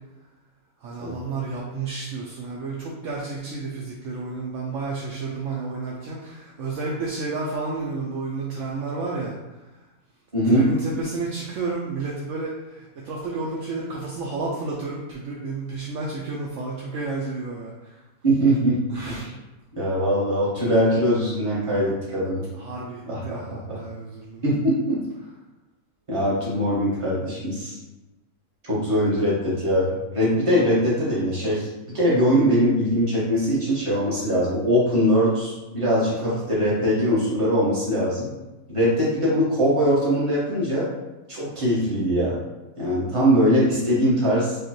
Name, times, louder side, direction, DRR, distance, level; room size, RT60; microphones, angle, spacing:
voice 1, 0.8-9.4 10.4-12.8 13.0-17.7 18.9-19.2 22.6-24.4 28.9-29.0, right 3 dB, 70° right, -4 dB, 0.8 m, -31 dB
voice 2, 10.3-10.7 18.2-18.8 19.1-19.3 19.7-22.4 23.0-23.8 24.4-25.0 26.1-27.8 28.6-31.7 31.9-38.3 38.7-40.9 41.3-42.4 42.8-44.6, equal, 20° right, -8 dB, 1.3 m, -21 dB
4.9 x 2.3 x 3.0 m, 1.0 s
omnidirectional pair, 1.5 m